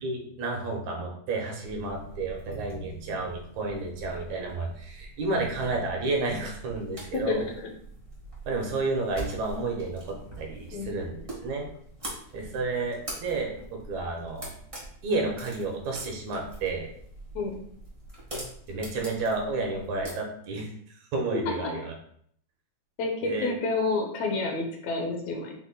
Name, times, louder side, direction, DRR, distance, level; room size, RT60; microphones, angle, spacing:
voice 1, 0.0-7.4 8.5-11.7 12.3-14.5 15.0-16.9 18.7-20.7 21.1-21.9 23.2-23.5, right 3 dB, 75° right, 0 dB, 2.2 m, -31 dB
sound 1, 1.6-20.1, right 2 dB, 35° right, 0.5 m, -44 dB
voice 2, 7.1-7.7 10.7-10.9 17.4-17.6 21.3-21.7 23.0-25.5, left 3 dB, 70° left, 2 dB, 2.0 m, -29 dB
5.8 x 4.1 x 2.2 m, 0.64 s
omnidirectional pair, 3.4 m